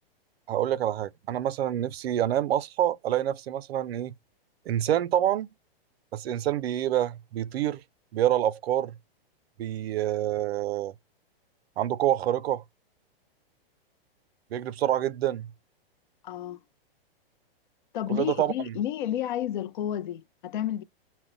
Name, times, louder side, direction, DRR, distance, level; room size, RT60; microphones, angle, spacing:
voice 1, 0.5-4.1 4.7-5.5 6.1-7.8 8.1-9.0 9.6-10.9 11.8-12.6 14.5-15.5 18.1-18.8, right 11 dB, 80° right, 0.5 m, -27 dB
voice 2, 16.2-16.6 17.9-20.8, left 11 dB, 55° left, 0.5 m, -31 dB
2.1 x 2.0 x 3.7 m
hypercardioid pair, 160°, 30 cm